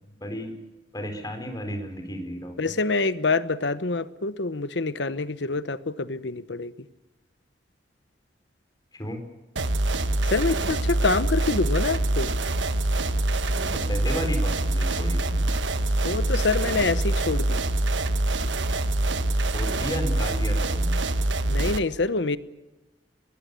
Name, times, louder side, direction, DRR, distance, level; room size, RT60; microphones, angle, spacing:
voice 1, 0.2-0.5 0.9-2.7 9.0-9.2 13.9-15.5 19.4-21.0, equal, 20° left, 6 dB, 4.4 m, -33 dB
voice 2, 2.6-6.7 10.2-12.3 16.0-17.6 21.5-22.4, left 3 dB, 70° left, 14 dB, 1.0 m, -26 dB
sound 1, 9.6-21.8, right 2 dB, 85° right, 1.3 m, -25 dB
23.5 x 19.0 x 8.3 m, 1.0 s
head